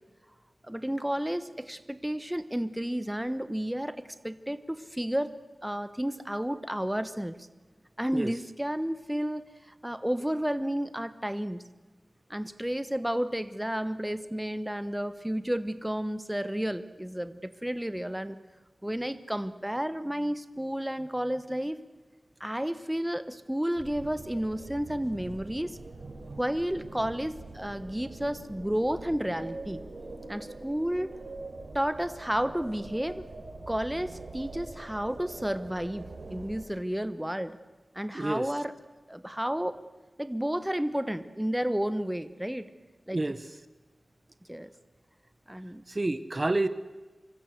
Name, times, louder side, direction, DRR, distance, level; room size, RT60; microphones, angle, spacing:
voice 1, 0.7-5.3 5.6-7.4 8.0-11.6 12.3-18.4 18.8-21.8 22.4-25.8 26.4-29.8 30.3-31.2 31.7-33.2 33.7-37.6 37.9-38.8 39.1-39.8 40.2-42.7 43.1-43.4 44.5-44.7 45.5-45.8, equal, 10° right, 12 dB, 1.2 m, -32 dB
sound 1, 23.7-36.6, right 2 dB, 80° right, 4.6 m, -44 dB
voice 2, 38.1-38.5 43.1-43.4 45.9-46.7, right 2 dB, 35° right, 13 dB, 1.1 m, -28 dB
26.0 x 23.0 x 7.9 m, 1.2 s
wide cardioid pair, 75°, 0 cm